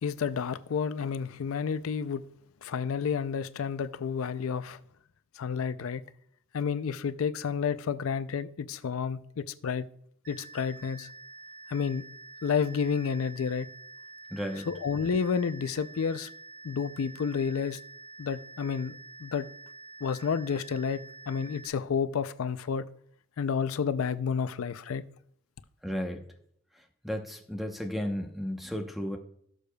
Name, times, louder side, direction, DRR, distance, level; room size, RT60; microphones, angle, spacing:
voice 1, 0.0-2.3 2.6-4.8 5.4-6.0 6.5-9.9 10.3-11.1 11.7-12.1 12.4-13.7 14.7-16.3 16.6-17.8 18.2-19.5 20.0-22.9 23.4-25.1, left 6 dB, 80° left, 0.4 m, -30 dB
sound 1, 10.2-21.7, right 3 dB, 45° right, 1.2 m, -48 dB
voice 2, 14.3-14.7 25.8-26.2 27.0-29.2, equal, ahead, 0.8 m, -33 dB
16.5 x 6.7 x 2.3 m
head